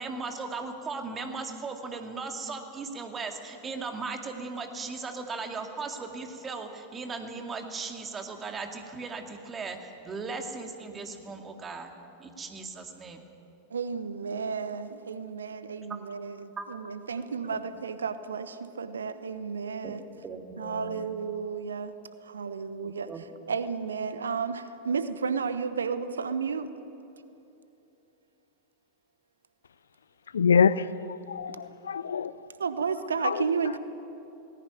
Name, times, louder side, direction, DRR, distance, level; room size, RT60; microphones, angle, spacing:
voice 1, 0.0-11.9 12.2-13.3 15.9-16.0 16.6-16.7 17.2-17.6 19.8-21.1 22.8-23.3, right 4 dB, 20° right, 5 dB, 2.2 m, -38 dB
voice 2, 13.7-20.0 20.6-21.9 22.2-23.1 23.5-26.7 32.6-33.8, right 5 dB, 70° right, 12 dB, 0.9 m, -32 dB
voice 3, 30.3-32.3 33.2-33.4, left 6 dB, 70° left, 18 dB, 0.5 m, -25 dB
18.5 x 17.0 x 9.6 m, 2.8 s
figure-of-eight pair, 90°, 0 cm